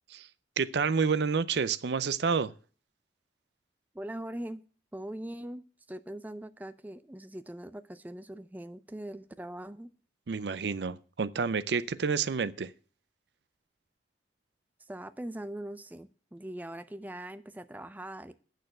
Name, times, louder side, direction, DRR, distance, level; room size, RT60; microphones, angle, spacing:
voice 1, 0.6-2.5 10.3-12.7, right 5 dB, 70° right, 0.5 m, -29 dB
voice 2, 3.9-4.6 4.9-9.9 14.8-18.3, right 1 dB, 10° right, 0.4 m, -41 dB
8.7 x 6.5 x 7.8 m
head